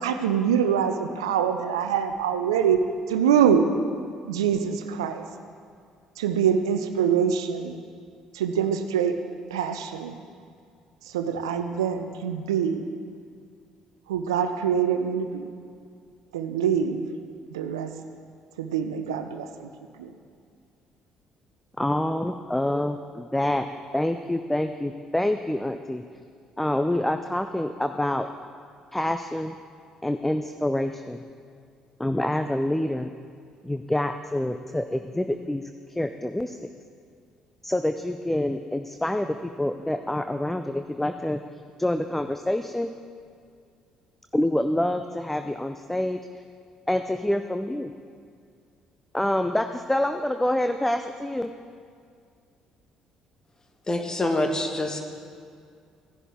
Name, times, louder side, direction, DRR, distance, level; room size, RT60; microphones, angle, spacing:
voice 1, 0.0-2.8 3.1-3.7 4.3-5.2 6.2-7.8 8.3-9.1 9.5-10.1 11.1-12.8 14.1-15.5 16.3-17.0 17.5-17.9 18.6-19.7 20.0-20.1, right 8 dB, 75° right, 8 dB, 0.5 m, -24 dB
voice 2, 21.8-23.7 23.9-26.0 26.6-28.3 28.9-29.6 30.0-31.2 32.0-33.1 33.6-35.6 35.9-36.7 37.6-41.4 41.8-42.9 44.3-46.2 46.9-47.9 49.1-51.5, left 1 dB, 5° left, 8 dB, 0.5 m, -26 dB
voice 3, 53.9-55.0, left 1 dB, 25° left, 4 dB, 1.4 m, -26 dB
15.0 x 10.5 x 3.6 m, 2.3 s
figure-of-eight pair, 50°, 3 cm